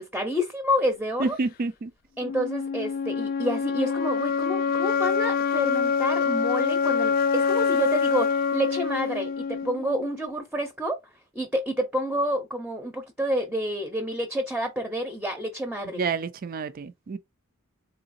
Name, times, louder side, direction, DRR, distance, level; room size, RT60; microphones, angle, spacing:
voice 1, 0.0-1.4 2.2-11.0 11.3-16.0, equal, 5° right, 0.6 m, -29 dB
voice 2, 1.2-1.9 16.0-17.2, right 4 dB, 45° right, 0.4 m, -29 dB
sound 1, 2.2-10.2, left 5 dB, 45° left, 0.3 m, -25 dB
3.8 x 3.8 x 2.6 m
head